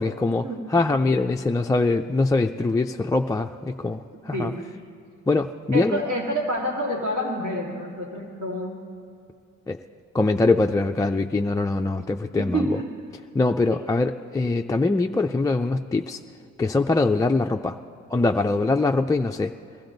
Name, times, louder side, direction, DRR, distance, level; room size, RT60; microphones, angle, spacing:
voice 1, 0.0-4.5 5.3-6.0 9.7-9.8 10.1-12.8 13.3-16.2 16.6-17.8 18.1-19.5, left 3 dB, 10° left, 3 dB, 0.3 m, -23 dB
voice 2, 5.7-8.8 12.4-12.9, equal, 70° right, -1 dB, 2.7 m, -28 dB
21.5 x 14.0 x 3.9 m, 2.5 s
cardioid pair, 90°, 30 cm